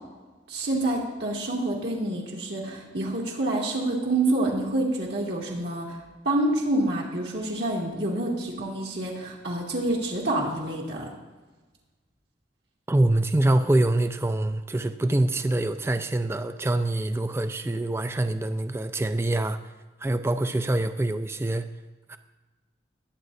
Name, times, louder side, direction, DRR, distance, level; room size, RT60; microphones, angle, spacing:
voice 1, 0.5-6.0 6.2-11.1, right 1 dB, 70° right, -3 dB, 2.1 m, -27 dB
voice 2, 12.9-19.6 20.0-21.7 22.1-22.2, right 1 dB, 15° right, 9 dB, 0.4 m, -25 dB
20.5 x 8.7 x 2.7 m, 1.3 s
head